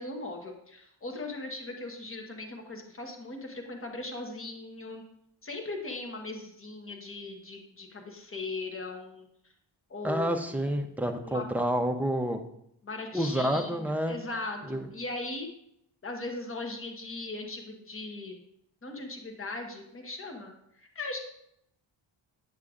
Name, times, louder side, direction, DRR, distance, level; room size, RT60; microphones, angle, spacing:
voice 1, 0.0-5.0 5.4-9.3 9.9-10.6 11.2-11.4 12.8-15.5 16.0-18.4 18.8-20.5 20.8-21.2, left 2 dB, 30° left, 3 dB, 1.0 m, -39 dB
voice 2, 10.0-12.4 13.1-14.2 14.7-14.8, equal, 5° right, 4 dB, 0.5 m, -29 dB
9.6 x 6.5 x 2.4 m, 0.75 s
wide cardioid pair, 110°, 47 cm